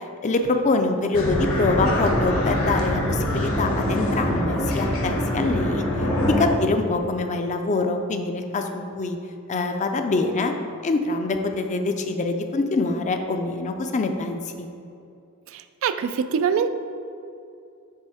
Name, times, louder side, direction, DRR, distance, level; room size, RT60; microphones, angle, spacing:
voice 1, 0.2-5.9 6.3-9.2 9.5-10.6 10.8-14.7, left 3 dB, 35° left, 6 dB, 0.4 m, -24 dB
sound 1, 1.1-6.5, left 1 dB, 75° left, 1.2 m, -24 dB
voice 2, 15.5-16.7, right 7 dB, 65° right, 10 dB, 0.3 m, -24 dB
7.3 x 3.5 x 4.9 m, 2.6 s
head